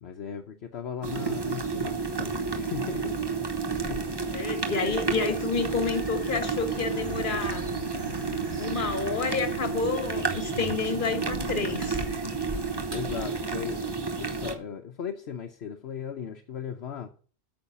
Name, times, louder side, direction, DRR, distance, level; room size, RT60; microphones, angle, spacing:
voice 1, 0.0-3.2 3.8-4.1 12.9-13.8 14.2-17.1, left 8 dB, 65° left, 1.1 m, -37 dB
sound 1, 1.0-14.5, right 4 dB, 20° right, 1.0 m, -31 dB
voice 2, 4.3-7.6 8.6-12.0, left 5 dB, 45° left, 1.5 m, -29 dB
sound 2, 6.8-13.1, right 4 dB, 65° right, 2.6 m, -41 dB
8.7 x 6.4 x 8.2 m
omnidirectional pair, 1.2 m